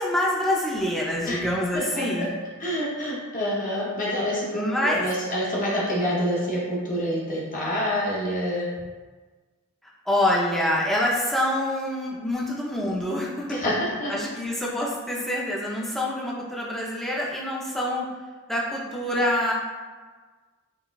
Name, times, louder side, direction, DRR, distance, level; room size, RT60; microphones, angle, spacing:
voice 1, 0.0-2.3 4.5-5.0 10.1-13.6 14.1-18.1 18.5-19.5, left 1 dB, ahead, -5 dB, 0.4 m, -26 dB
voice 2, 1.7-2.3 2.6-8.7 13.5-13.7 14.0-14.1, equal, 40° left, -5 dB, 0.7 m, -27 dB
4.0 x 2.2 x 2.3 m, 1.4 s
head